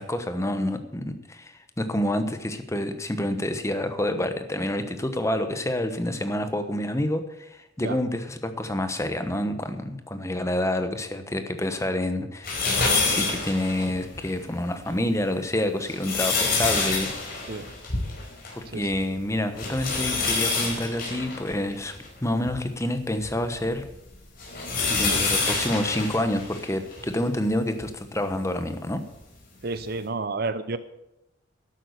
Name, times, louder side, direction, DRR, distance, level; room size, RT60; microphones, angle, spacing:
voice 1, 0.0-12.7 13.0-17.1 18.5-23.8 24.9-29.0, left 1 dB, 15° left, 9 dB, 1.1 m, -28 dB
sound 1, 12.4-14.3 14.8-14.9 15.7-18.7 18.9-19.0 19.6-22.6 23.2-27.1 27.8-27.9 29.2-29.3, left 4 dB, 50° left, 4.6 m, -27 dB
voice 2, 18.7-19.0 25.1-25.2 29.6-30.8, right 3 dB, 50° right, 13 dB, 0.7 m, -31 dB
12.0 x 8.6 x 8.1 m, 0.87 s
head